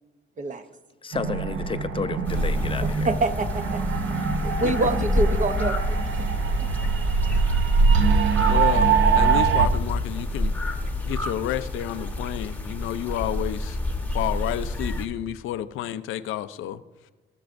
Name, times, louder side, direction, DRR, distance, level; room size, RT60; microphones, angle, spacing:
voice 1, 1.0-3.1, left 4 dB, 25° left, 0.5 m, -31 dB
sound 1, 1.1-9.7, right 5 dB, 75° right, 0.8 m, -23 dB
sound 2, 2.2-15.1, left 2 dB, 10° left, 1.0 m, -28 dB
voice 2, 3.0-3.8 4.4-6.3 6.6-6.7, right 3 dB, 40° right, 0.8 m, -26 dB
voice 3, 8.4-10.6 11.0-13.8 14.1-16.8, left 12 dB, 85° left, 0.5 m, -30 dB
16.5 x 6.1 x 2.5 m
cardioid pair, 90°, 20 cm